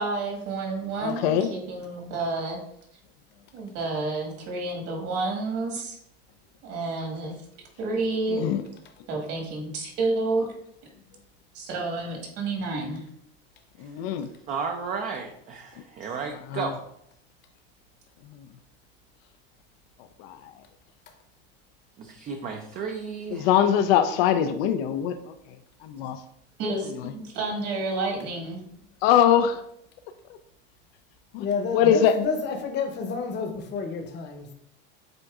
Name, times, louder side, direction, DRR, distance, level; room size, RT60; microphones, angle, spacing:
voice 1, 0.0-2.6 3.5-6.0 6.6-7.3 7.8-8.4 9.1-10.5 11.5-13.0 26.6-28.6, right 3 dB, 50° right, 1 dB, 1.6 m, -30 dB
voice 2, 1.0-1.5 8.3-8.6 13.8-14.3 16.5-16.7 20.2-20.4 23.3-25.2 25.8-26.2 27.0-27.1 29.0-29.6 31.3-31.5 31.7-32.2, left 9 dB, 70° left, 9 dB, 0.5 m, -22 dB
voice 3, 14.5-16.8 22.0-23.5, right 5 dB, 25° right, 3 dB, 0.4 m, -33 dB
voice 4, 31.4-34.5, left 5 dB, 35° left, 5 dB, 0.8 m, -30 dB
7.6 x 2.6 x 2.4 m, 0.72 s
supercardioid pair, 120°, 31 cm